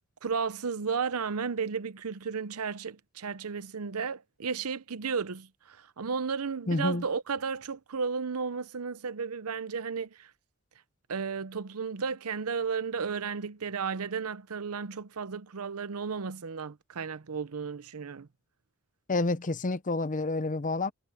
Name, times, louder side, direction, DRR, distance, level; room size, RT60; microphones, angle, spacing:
voice 1, 0.2-10.3 11.1-18.3, right 5 dB, 80° right, 0.7 m, -33 dB
voice 2, 6.7-7.0 19.1-20.9, left 2 dB, 35° left, 0.7 m, -29 dB
head